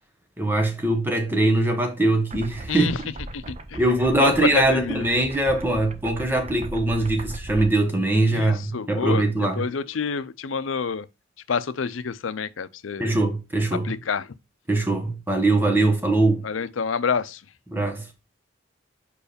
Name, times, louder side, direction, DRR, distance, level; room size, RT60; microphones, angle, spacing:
voice 1, 0.4-3.0 3.7-9.6 13.0-13.9 14.7-16.4 17.7-18.0, right 2 dB, 10° right, 1.2 m, -22 dB
sound 1, 2.3-7.7, right 2 dB, 35° right, 0.6 m, -38 dB
voice 2, 3.3-3.8 4.2-5.0 8.3-11.1 11.5-13.1 13.8-14.3 16.4-17.4, left 5 dB, 85° left, 0.5 m, -27 dB
4.9 x 4.7 x 5.1 m
head